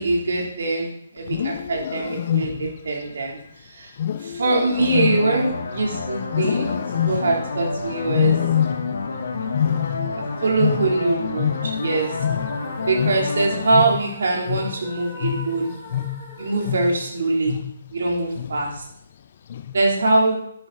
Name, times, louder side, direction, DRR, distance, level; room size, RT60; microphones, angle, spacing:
voice 1, 0.0-3.9 4.2-8.4 10.2-12.1 12.9-15.7 16.4-17.6 17.9-18.8 19.7-20.4, right 2 dB, 70° right, -1 dB, 3.4 m, -23 dB
Wild animals, 1.2-2.9 4.0-5.8 6.3-7.5 8.1-9.1 9.4-11.9 12.2-17.1 17.5-17.9 18.3-18.8 19.5-19.9, left 10 dB, 45° left, 0.6 m, -26 dB
sound 1, 4.8-13.7, left 3 dB, 75° left, 2.2 m, -29 dB
sound 2, 11.7-17.8, left 2 dB, 20° left, 3.4 m, -42 dB
10.0 x 8.0 x 4.1 m, 0.69 s
hypercardioid pair, 155°, 0 cm